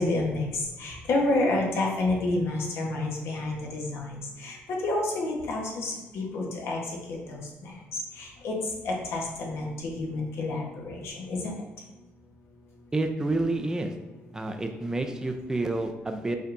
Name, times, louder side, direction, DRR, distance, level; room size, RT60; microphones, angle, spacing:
voice 1, 0.0-6.8 7.1-7.7 8.2-8.6 8.8-11.6, left 2 dB, 65° left, -1 dB, 1.1 m, -29 dB
voice 2, 12.9-13.9 14.3-16.4, right 2 dB, 15° right, 5 dB, 0.4 m, -29 dB
5.3 x 3.3 x 2.6 m, 1.1 s
cardioid pair, 120°, 5 cm